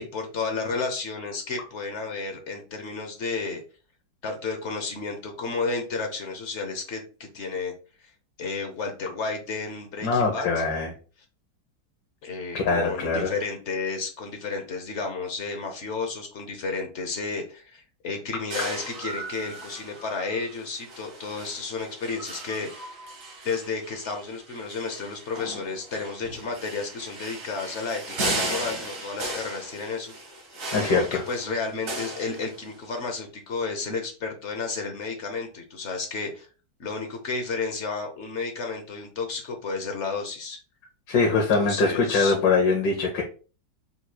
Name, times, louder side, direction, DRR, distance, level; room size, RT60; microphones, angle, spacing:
voice 1, 0.0-3.6 4.2-7.0 7.3-7.7 8.4-10.6 12.2-22.7 23.4-30.1 30.9-36.5 36.8-40.6 41.3-42.3, left 4 dB, 55° left, 4 dB, 0.9 m, -32 dB
voice 2, 10.0-10.9 12.5-13.3 30.7-31.2 41.1-43.2, left 4 dB, 85° left, 0 dB, 1.6 m, -23 dB
sound 1, 18.5-33.0, right 1 dB, 50° right, 1.4 m, -36 dB
5.4 x 3.1 x 2.2 m, 0.36 s
omnidirectional pair, 1.9 m